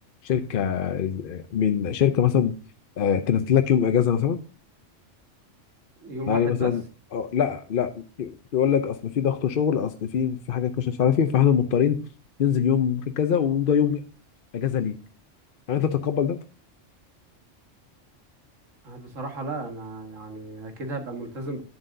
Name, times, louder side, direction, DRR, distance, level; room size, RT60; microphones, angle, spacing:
voice 1, 0.2-2.6 3.0-4.4 6.3-6.8 7.1-12.0 12.4-14.0 14.5-15.0 15.7-16.4, left 8 dB, 55° left, 8 dB, 0.7 m, -23 dB
voice 2, 6.0-6.7 18.8-21.6, right 2 dB, 85° right, 4 dB, 1.9 m, -34 dB
9.9 x 7.6 x 2.6 m, 0.37 s
omnidirectional pair, 1.3 m